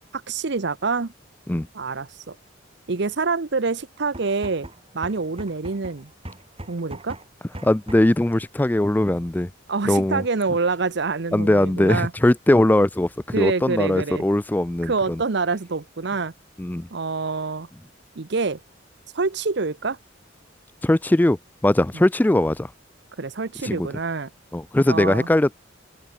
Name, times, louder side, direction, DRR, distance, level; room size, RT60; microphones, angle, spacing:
voice 1, 0.3-1.1 1.7-2.3 2.9-4.7 4.9-6.1 6.7-7.2 9.7-12.1 13.3-14.2 14.8-16.3 16.9-17.7 18.2-18.6 19.1-20.0 21.9-22.0 23.2-24.3 24.9-25.3, right 4 dB, 60° right, 0.8 m, -26 dB
sound 1, 4.1-8.2, right 1 dB, 30° right, 5.1 m, -40 dB
voice 2, 7.6-9.5 9.9-10.2 11.3-13.1 13.4-15.2 16.6-16.9 20.8-21.4 21.6-22.7 23.6-23.9 24.5-25.6, left 1 dB, 10° left, 0.3 m, -20 dB
open air
head